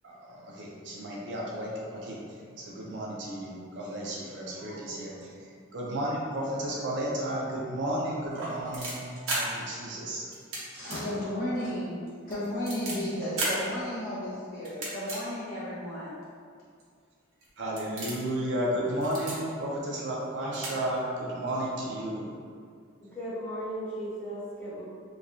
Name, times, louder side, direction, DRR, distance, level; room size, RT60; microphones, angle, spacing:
voice 1, 0.0-9.1 9.3-10.3 17.6-22.3, right 1 dB, 60° right, -4 dB, 0.5 m, -33 dB
sound 1, 8.3-9.4 10.3-10.6 10.9-11.0 11.4-11.5 12.1-12.9 13.4-13.5 14.6-15.2 15.8-15.9 16.8-16.9 17.3-17.5 17.8-18.3 18.9-19.4 20.2-20.3 20.5-20.7 21.0-21.1, right 2 dB, 85° right, 0.8 m, -33 dB
voice 2, 10.7-12.0 12.3-16.1, left 1 dB, 45° left, -11 dB, 0.9 m, -33 dB
voice 3, 23.0-24.8, equal, 10° left, -14 dB, 1.1 m, -36 dB
3.0 x 2.2 x 2.5 m, 2.2 s
head